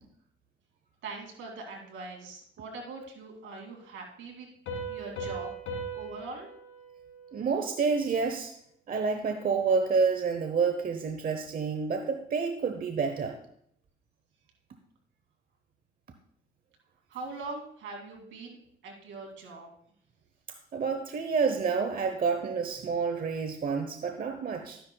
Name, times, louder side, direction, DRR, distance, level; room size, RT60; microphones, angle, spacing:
voice 1, 1.0-4.5 4.9-5.5 5.9-6.5 17.1-18.6 18.8-19.7, right 3 dB, 80° right, 1 dB, 2.6 m, -42 dB
Piano, 4.7-8.1, right 2 dB, 90° left, 2.6 m, -39 dB
voice 2, 7.3-8.5 8.9-13.4 20.7-24.8, right 5 dB, 45° right, 6 dB, 0.9 m, -29 dB
13.0 x 10.5 x 2.3 m, 0.68 s
cardioid pair, 90°, 20 cm